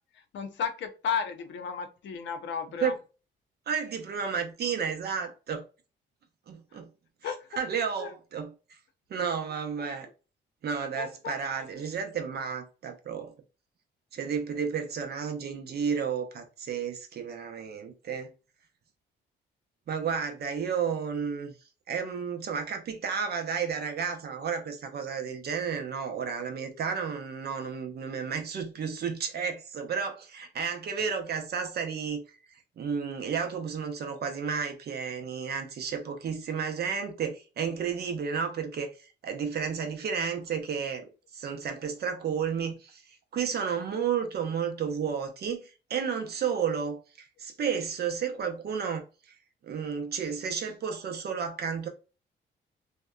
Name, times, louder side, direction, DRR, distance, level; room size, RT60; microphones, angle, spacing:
voice 1, 0.3-2.9 7.2-7.4 8.0-8.1 11.0-11.3, left 6 dB, 65° left, 0.6 m, -33 dB
voice 2, 3.7-5.6 6.5-6.9 7.2-8.5 9.1-10.1 10.6-13.3 14.1-18.3 19.9-21.5 21.9-32.2 32.8-41.0 41.3-43.0 43.3-49.3 49.6-51.9, right 6 dB, 55° right, 0.6 m, -32 dB
2.7 x 2.1 x 2.3 m
cardioid pair, 90°, 20 cm